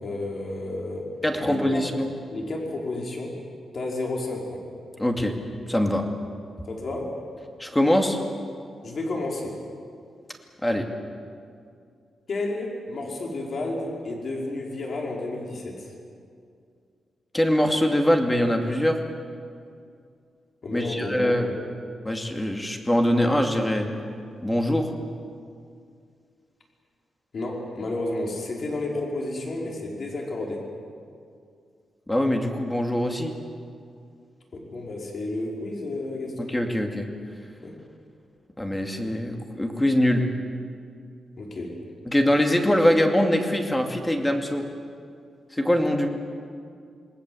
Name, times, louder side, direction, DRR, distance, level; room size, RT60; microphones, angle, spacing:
voice 1, 0.0-1.1 1.4-1.8 2.3-3.4 3.7-4.6 6.7-7.1 8.8-9.6 12.3-15.9 20.6-21.6 27.3-30.6 34.5-36.5 37.6-37.8 41.4-41.8, left 2 dB, 50° left, -1 dB, 5.3 m, -31 dB
voice 2, 1.2-2.1 5.0-5.4 5.7-6.1 7.6-8.2 10.6-10.9 17.3-19.0 20.7-21.5 22.0-23.9 24.4-24.9 32.1-33.3 36.4-37.1 38.6-40.3 42.1-44.6 45.5-46.1, left 1 dB, 10° left, 3 dB, 2.6 m, -23 dB
28.0 x 20.0 x 8.0 m, 2.3 s
cardioid pair, 120°, 0 cm